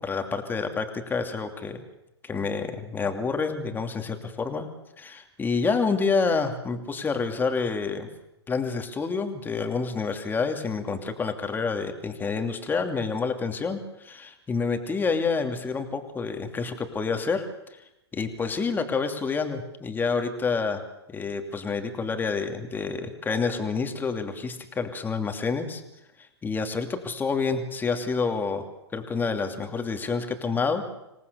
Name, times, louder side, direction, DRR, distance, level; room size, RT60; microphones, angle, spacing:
voice 1, 0.0-1.8 2.2-4.7 5.0-8.1 8.5-17.8 18.1-25.8 26.2-28.7 28.9-30.8, left 4 dB, 15° left, 6 dB, 2.6 m, -28 dB
26.5 x 18.5 x 6.9 m, 0.89 s
hypercardioid pair, 115°, 14 cm